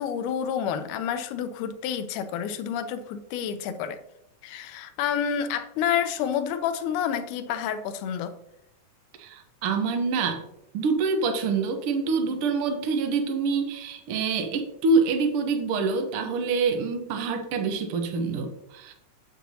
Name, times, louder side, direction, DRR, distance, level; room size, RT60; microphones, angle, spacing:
voice 1, 0.0-4.0 4.4-8.3, left 8 dB, 80° left, 10 dB, 2.1 m, -29 dB
voice 2, 9.2-10.4 10.7-18.9, right 4 dB, 85° right, 5 dB, 1.2 m, -26 dB
8.0 x 7.6 x 2.7 m, 0.80 s
omnidirectional pair, 3.8 m